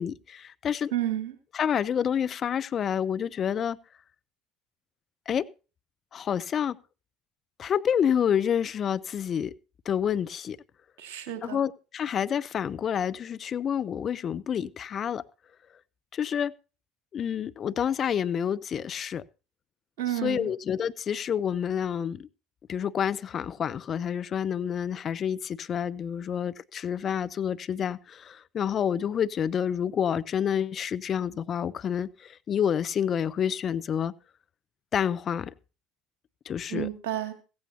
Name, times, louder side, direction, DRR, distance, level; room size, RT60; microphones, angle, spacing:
voice 1, 0.0-0.9 1.5-3.8 5.3-5.5 6.1-6.8 7.6-9.5 9.9-10.6 11.4-15.2 16.1-16.5 17.1-19.2 20.1-22.3 22.7-34.1 34.9-35.5 36.5-36.9, left 8 dB, 40° left, 0.6 m, -28 dB
voice 2, 0.9-1.3 11.0-11.6 20.0-20.5 36.7-37.3, right 12 dB, 70° right, 2.2 m, -31 dB
15.5 x 15.0 x 2.8 m
hypercardioid pair, 65°, 0 cm